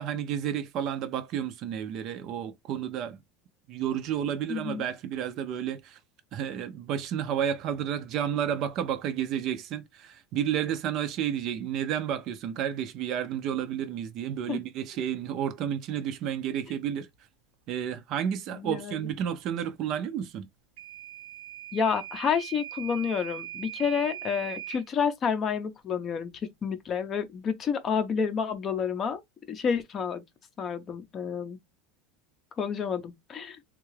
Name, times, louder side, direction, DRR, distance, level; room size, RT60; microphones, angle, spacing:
voice 1, 0.0-3.2 3.7-6.0 6.3-17.1 17.7-20.5, right 9 dB, 40° right, 0.5 m, -31 dB
voice 2, 4.5-4.8 14.5-14.6 18.5-19.1 21.7-26.3 26.6-29.2 29.5-30.2 30.6-31.6 32.6-33.6, left 6 dB, 25° left, 0.6 m, -29 dB
Microwave oven / Alarm, 20.8-24.9, right 12 dB, 75° right, 0.8 m, -40 dB
3.6 x 2.3 x 3.1 m
supercardioid pair, 170°, 0 cm